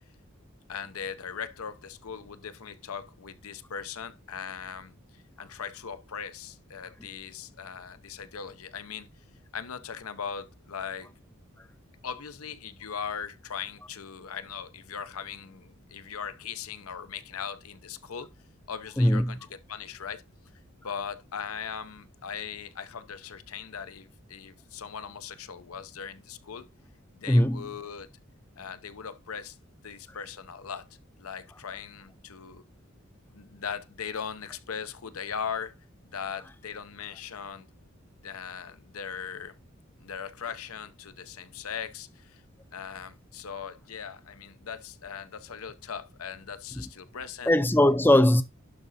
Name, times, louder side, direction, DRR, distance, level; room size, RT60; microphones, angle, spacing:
voice 1, 0.7-5.0 5.4-9.1 9.5-11.1 12.0-18.3 18.7-20.2 20.8-26.7 27.2-28.1 28.6-29.6 29.8-30.9 31.2-32.6 33.3-35.7 36.1-37.7 38.2-39.5 40.0-42.4 42.7-47.5, left 7 dB, 90° left, 0.7 m, -39 dB
voice 2, 19.0-19.4 27.3-27.7 47.5-48.4, left 1 dB, 10° left, 0.4 m, -20 dB
11.5 x 3.9 x 4.1 m
head